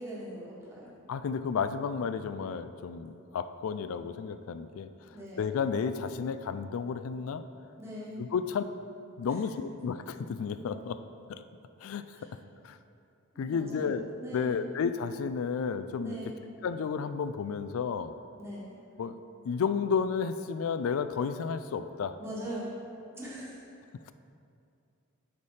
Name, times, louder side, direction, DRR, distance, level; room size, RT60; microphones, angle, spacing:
voice 1, 0.0-0.9 5.1-5.4 7.8-8.2 9.3-9.4 10.7-10.8 12.1-12.3 13.3-14.6 16.0-16.5 18.4-18.8 22.2-22.8 23.1-23.6, right 1 dB, 10° right, -7 dB, 1.3 m, -41 dB
voice 2, 1.1-7.4 8.2-8.6 9.2-11.0 11.3-11.4 11.8-12.3 12.6-12.8 13.4-14.1 14.3-16.2 16.6-18.1 19.0-22.2, left 6 dB, 75° left, 11 dB, 0.3 m, -32 dB
8.3 x 3.3 x 5.5 m, 2.5 s
head